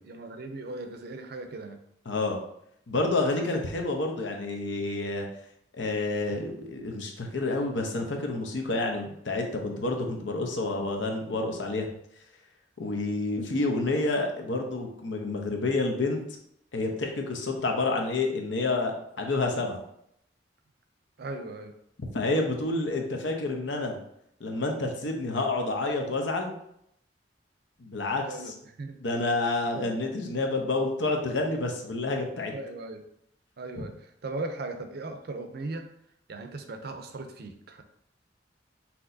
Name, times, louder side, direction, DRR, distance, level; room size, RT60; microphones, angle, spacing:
voice 1, 0.0-1.8 21.2-21.7 28.2-29.0 29.7-29.9 32.5-33.0 33.6-35.9 36.3-37.8, right 2 dB, 55° right, 7 dB, 0.5 m, -38 dB
voice 2, 2.1-2.4 2.9-5.3 5.7-11.9 12.8-16.2 16.7-19.8 22.0-24.0 24.4-26.5 27.8-28.5 29.0-32.5 33.8-33.9, left 2 dB, 75° left, 2 dB, 0.8 m, -29 dB
6.0 x 2.8 x 2.6 m, 0.74 s
head